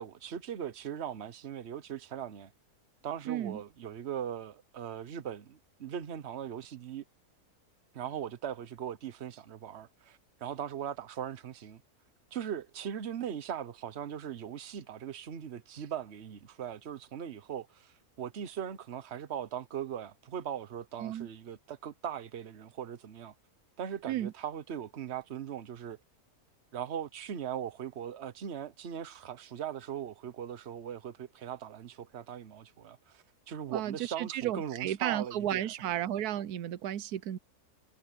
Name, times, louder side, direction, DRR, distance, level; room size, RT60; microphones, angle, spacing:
voice 1, 0.0-2.5 3.0-7.0 7.9-11.8 12.3-23.3 23.8-26.0 26.7-35.6, right 9 dB, 50° right, 1.2 m, -39 dB
voice 2, 3.3-3.6 21.0-21.3 24.1-24.3 33.7-37.4, right 11 dB, 85° right, 1.2 m, -33 dB
omnidirectional pair, 1.6 m